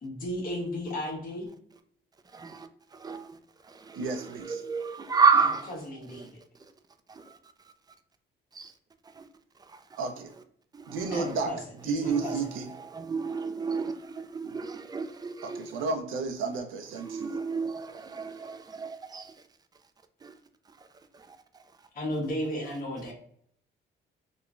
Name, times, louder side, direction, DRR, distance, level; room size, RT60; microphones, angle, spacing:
voice 1, 0.0-1.5 5.8-6.4 11.1-11.6 11.8-12.5 21.9-23.1, equal, 45° left, 1.1 m, -34 dB
voice 2, 2.3-3.4 3.6-5.7 6.1-6.3 7.1-7.4 8.5-8.7 9.0-9.2 9.7-10.0 10.7-11.3 12.0-12.4 12.7-15.6 17.0-19.3 20.2-20.3 20.8-20.9 21.1-21.6, right 5 dB, 20° right, 0.3 m, -31 dB
voice 3, 3.9-4.6 10.0-10.3 10.9-11.5 11.8-12.7 15.4-17.4, right 4 dB, 85° right, 0.5 m, -32 dB
3.0 x 2.1 x 2.4 m
cardioid pair, 90°, 20 cm